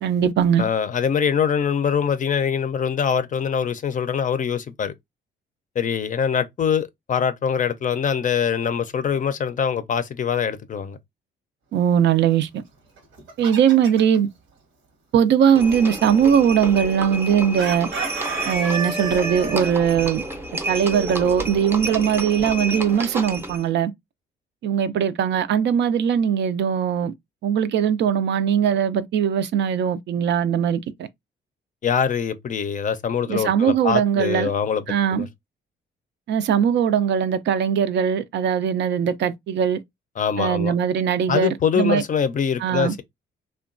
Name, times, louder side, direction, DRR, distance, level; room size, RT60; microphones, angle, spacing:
voice 1, 0.0-0.6 11.7-12.6 13.4-14.3 15.1-17.9 18.5-20.2 20.7-23.9 24.6-27.1 27.4-30.8 33.3-34.5 34.9-35.3 36.3-39.8 40.4-42.0 42.6-42.9, right 8 dB, 65° right, 0.4 m, -20 dB
voice 2, 0.6-4.9 5.8-11.0 31.8-34.8 35.1-35.3 40.2-40.7 41.3-43.0, left 7 dB, 40° left, 0.5 m, -23 dB
Chicken rooster, 13.0-14.2 17.6-19.7, right 4 dB, 85° right, 1.0 m, -29 dB
Livestock farm animals working animals, 15.5-23.7, right 1 dB, 10° right, 0.6 m, -30 dB
2.9 x 2.2 x 2.4 m
cardioid pair, 90°, 20 cm